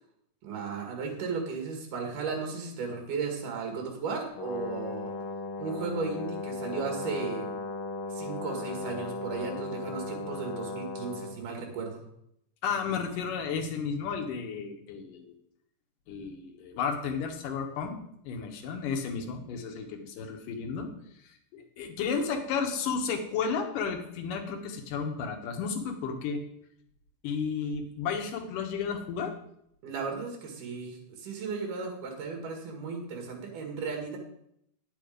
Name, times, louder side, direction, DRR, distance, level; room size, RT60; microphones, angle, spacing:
voice 1, 0.4-5.1 5.6-7.5 8.1-12.1 29.8-34.2, right 5 dB, 75° right, 2 dB, 3.6 m, -35 dB
Brass instrument, 4.3-11.4, left 3 dB, 45° left, 2.1 m, -36 dB
voice 2, 12.6-15.3 16.1-17.9 18.2-20.9 21.2-26.4 27.2-29.3, left 6 dB, 85° left, 4 dB, 2.9 m, -33 dB
9.7 x 7.7 x 5.1 m, 0.73 s
omnidirectional pair, 3.7 m